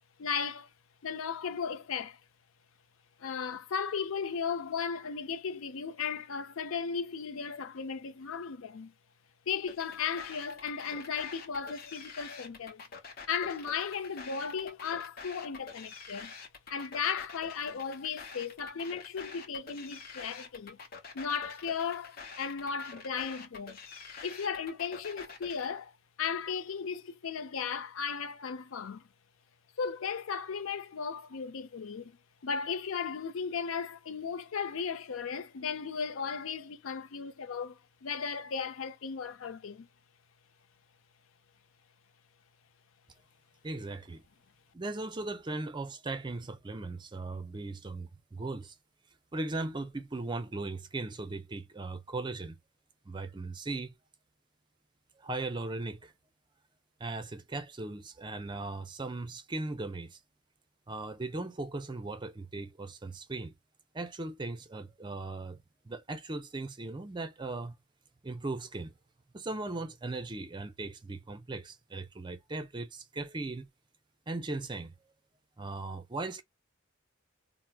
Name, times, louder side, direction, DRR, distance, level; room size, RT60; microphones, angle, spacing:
voice 1, 0.2-0.7 1.0-2.2 3.2-8.9 9.5-12.8 13.3-16.3 16.7-20.8 21.1-23.8 24.2-25.9 26.2-29.0 29.8-32.2 32.4-39.9, left 6 dB, 80° left, 0.5 m, -36 dB
sound 1, 9.7-25.7, left 5 dB, 45° left, 0.8 m, -47 dB
voice 2, 43.6-44.2 44.7-48.8 49.3-52.6 53.1-53.9 55.2-56.1 57.0-60.2 60.9-63.5 63.9-65.6 65.8-67.8 68.2-68.9 69.3-73.7 74.3-74.9 75.6-76.4, right 2 dB, 20° right, 0.4 m, -38 dB
4.5 x 2.0 x 2.3 m
head